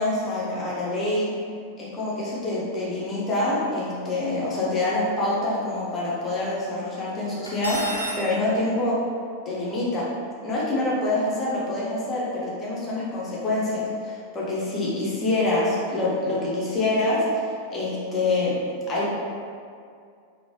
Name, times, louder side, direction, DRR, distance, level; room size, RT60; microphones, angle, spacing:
voice 1, 0.0-1.3 1.8-9.0 9.5-10.1 10.4-18.5 18.9-19.1, left 2 dB, 25° left, -7 dB, 0.7 m, -26 dB
Cutlery silverware, 7.5-8.2, equal, 85° left, 0.4 m, -31 dB
2.9 x 2.1 x 2.7 m, 2.3 s
figure-of-eight pair, 90°, 0 cm